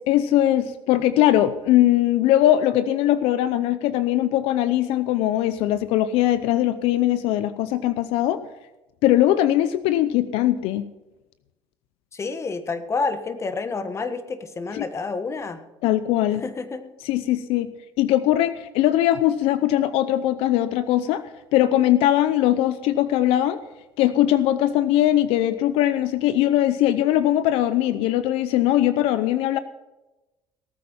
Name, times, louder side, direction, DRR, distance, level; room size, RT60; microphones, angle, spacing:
voice 1, 0.1-8.4 9.0-10.9 14.7-14.8 15.8-16.4 17.0-17.7 18.0-21.2 21.5-23.6 24.0-29.6, left 13 dB, 75° left, 13 dB, 0.7 m, -20 dB
voice 2, 12.1-15.6 16.4-16.9, left 4 dB, 30° left, 10 dB, 1.4 m, -29 dB
18.5 x 8.7 x 5.6 m, 1.0 s
cardioid pair, 105°, 10 cm